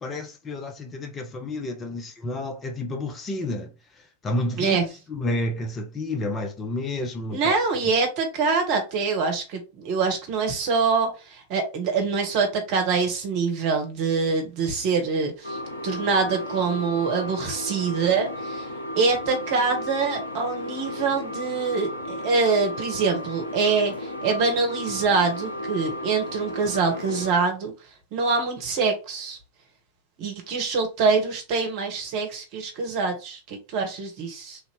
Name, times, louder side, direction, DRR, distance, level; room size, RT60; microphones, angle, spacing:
voice 1, 0.0-4.8 5.1-7.5, left 1 dB, 20° left, 0.6 m, -30 dB
voice 2, 7.3-18.7 19.0-27.7 28.1-29.4 30.2-34.6, right 4 dB, 45° right, 1.2 m, -25 dB
sound 1, 15.4-27.3, left 1 dB, 75° left, 0.7 m, -34 dB
3.2 x 2.8 x 3.1 m
figure-of-eight pair, 90°, 0 cm